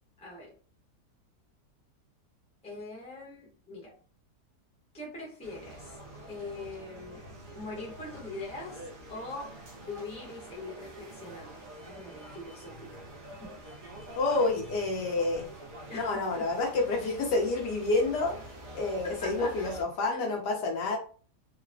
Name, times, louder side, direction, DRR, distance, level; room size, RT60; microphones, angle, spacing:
voice 1, 0.2-0.5 2.6-3.9 4.9-6.0 6.3-7.2 7.5-8.8 9.1-13.1 13.4-13.7 15.9-16.4 16.7-16.8 19.0-19.7 20.1-20.2, left 2 dB, 5° left, -3 dB, 0.7 m, -42 dB
sound 1, 5.4-19.8, right 1 dB, 75° right, 1.4 m, -47 dB
voice 2, 14.2-15.5 15.9-18.3 18.7-21.0, left 3 dB, 80° left, 2 dB, 1.4 m, -28 dB
3.8 x 2.0 x 2.6 m, 0.41 s
omnidirectional pair, 1.8 m